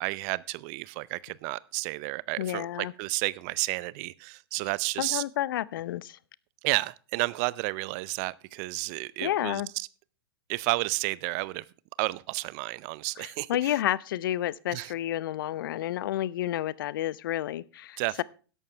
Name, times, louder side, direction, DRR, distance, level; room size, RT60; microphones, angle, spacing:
voice 1, 0.0-5.2 6.6-9.9 10.5-11.6 12.0-13.8 14.7-14.9 18.0-18.2, right 23 dB, 40° right, 0.5 m, -31 dB
voice 2, 2.4-2.9 5.0-6.2 9.2-9.7 13.2-18.2, left 13 dB, 55° left, 0.6 m, -30 dB
13.5 x 11.0 x 3.3 m
figure-of-eight pair, 105°, 13 cm